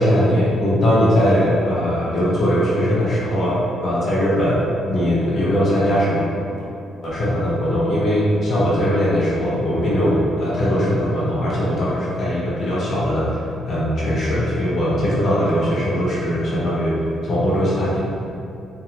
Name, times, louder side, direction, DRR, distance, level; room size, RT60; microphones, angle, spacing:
voice 1, 0.0-4.6 4.9-6.2 6.6-6.7 7.0-18.0, equal, 55° left, -7 dB, 0.8 m, -20 dB
2.4 x 2.3 x 2.8 m, 2.5 s
cardioid pair, 90°, 0 cm